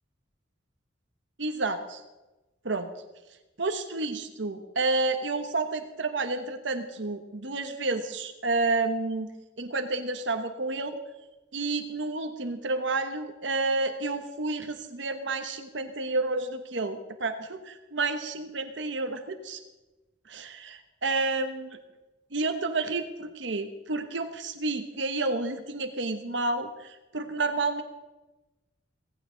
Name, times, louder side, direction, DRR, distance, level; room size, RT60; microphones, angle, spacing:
voice 1, 1.4-2.0 2.6-2.9 3.6-9.3 9.6-11.0 11.5-19.6 20.3-21.8 22.3-27.8, right 3 dB, 65° right, 8 dB, 1.2 m, -30 dB
17.0 x 16.0 x 3.9 m, 1.1 s
head